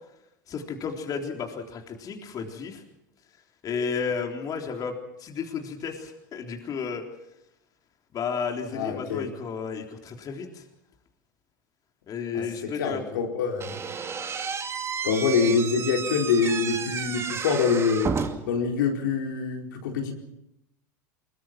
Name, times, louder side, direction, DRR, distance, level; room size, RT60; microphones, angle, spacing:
voice 1, 0.5-2.8 3.6-4.9 5.2-7.0 8.1-10.6 12.1-13.0, left 6 dB, 35° left, 2 dB, 3.7 m, -32 dB
voice 2, 8.7-9.2 12.3-12.4 12.8-13.8 15.0-18.1 18.5-20.1, left 5 dB, 75° left, 1 dB, 4.4 m, -25 dB
Slam / Squeak, 13.6-18.6, right 6 dB, 25° right, 2.4 m, -32 dB
24.0 x 22.0 x 6.0 m, 0.82 s
hypercardioid pair, 90°, 10 cm